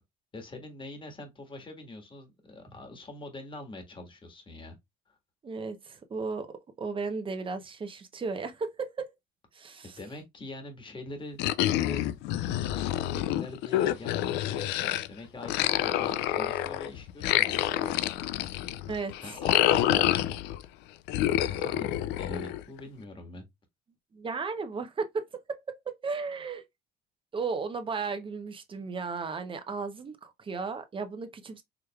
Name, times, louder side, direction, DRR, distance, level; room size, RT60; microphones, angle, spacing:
voice 1, 0.3-4.8 5.1-5.2 9.8-12.0 12.4-18.0 19.2-20.6 21.5-21.9 22.2-23.5, left 2 dB, 30° left, 1.6 m, -44 dB
voice 2, 5.4-9.1 9.5-10.0 18.9-19.4 24.1-25.1 25.5-26.6 27.3-31.6, right 4 dB, 30° right, 0.8 m, -35 dB
sound 1, 11.4-15.1 15.4-20.6 21.1-22.8, left 13 dB, 90° left, 0.4 m, -28 dB
4.9 x 3.2 x 2.3 m
cardioid pair, 110°, 17 cm